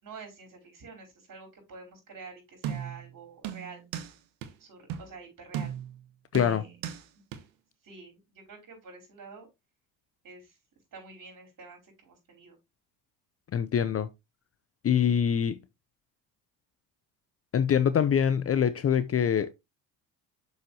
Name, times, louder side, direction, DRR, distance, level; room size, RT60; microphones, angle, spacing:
voice 1, 0.0-3.8 4.6-5.7 6.4-6.8 7.8-9.5 10.2-10.6 10.9-12.6, right 4 dB, 45° right, 4.7 m, -48 dB
sound 1, 2.6-3.1 3.4-4.1 4.4-4.5 4.9-5.1 5.5-6.0 6.3-7.0 7.3-7.4, right 9 dB, 75° right, 1.2 m, -36 dB
voice 2, 6.3-6.6 13.5-14.1 14.8-15.6 17.5-19.5, left 8 dB, 35° left, 0.6 m, -24 dB
6.7 x 6.5 x 2.8 m
hypercardioid pair, 65°, 43 cm